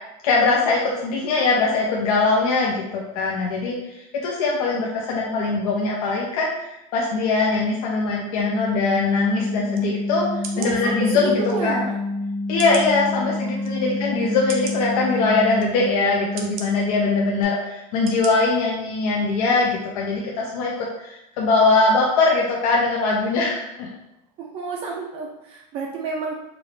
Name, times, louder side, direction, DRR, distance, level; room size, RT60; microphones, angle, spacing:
voice 1, 0.2-11.8 12.5-23.9, left 3 dB, 75° left, -3 dB, 0.7 m, -22 dB
sound 1, 8.4-17.4, left 2 dB, 25° left, 0.5 m, -28 dB
sound 2, 9.7-9.9 10.4-10.7 11.5-11.6 12.6-12.9 13.6-13.7 14.5-14.8 15.6-15.7 16.4-16.7 17.4-17.5 18.1-18.3 18.7-18.8, right 5 dB, 70° right, 0.7 m, -35 dB
voice 2, 10.5-12.0 13.2-13.8 24.4-26.3, right 4 dB, 30° right, -1 dB, 0.4 m, -30 dB
4.7 x 2.5 x 3.3 m, 0.89 s
supercardioid pair, 175°, 19 cm